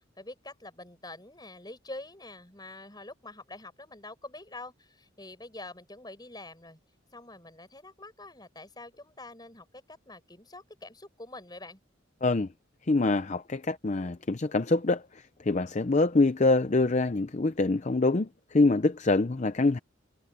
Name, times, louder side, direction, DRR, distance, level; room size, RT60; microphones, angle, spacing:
voice 1, 0.2-6.8 7.1-11.8, left 2 dB, 20° left, 7.4 m, -46 dB
voice 2, 12.9-15.0 15.5-19.8, left 3 dB, 35° left, 0.6 m, -25 dB
head